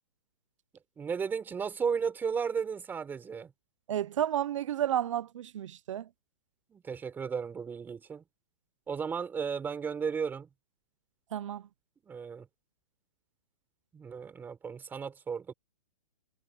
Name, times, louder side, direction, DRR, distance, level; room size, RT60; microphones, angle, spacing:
voice 1, 1.0-3.5 6.7-8.2 8.9-10.5 12.1-12.5 13.9-15.5, right 6 dB, 10° right, 4.2 m, -34 dB
voice 2, 3.9-6.1 11.3-11.6, right 11 dB, 65° right, 0.8 m, -31 dB
hypercardioid pair, 160°, 17 cm